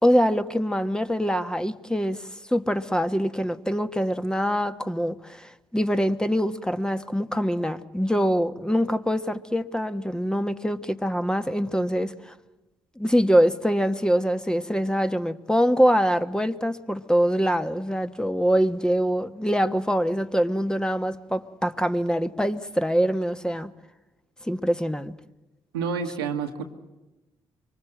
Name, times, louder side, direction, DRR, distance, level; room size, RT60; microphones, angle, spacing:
voice 1, 0.0-12.3 13.0-23.7 24.5-25.1, equal, 5° left, 1.3 m, -24 dB
voice 2, 25.7-26.6, right 6 dB, 85° right, 1.5 m, -28 dB
24.5 x 24.0 x 7.9 m
hypercardioid pair, 45°, 12 cm